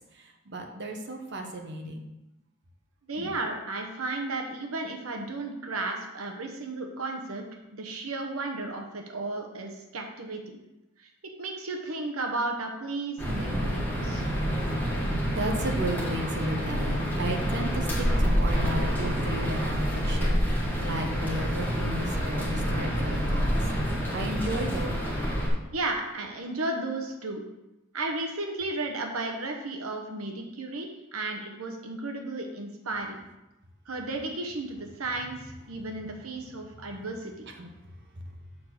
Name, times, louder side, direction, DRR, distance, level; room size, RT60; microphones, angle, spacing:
voice 1, 0.1-2.1 3.2-3.3 15.3-25.0 37.6-37.7, right 1 dB, 55° right, 3 dB, 1.0 m, -34 dB
voice 2, 3.1-7.4 7.7-10.6 11.0-11.1 11.4-14.2 25.7-27.4 27.9-33.2 33.9-37.4, right 2 dB, 85° right, 3 dB, 1.0 m, -34 dB
sound 1, 13.2-25.5, equal, 10° left, 2.0 m, -28 dB
7.3 x 4.1 x 6.5 m, 0.95 s
head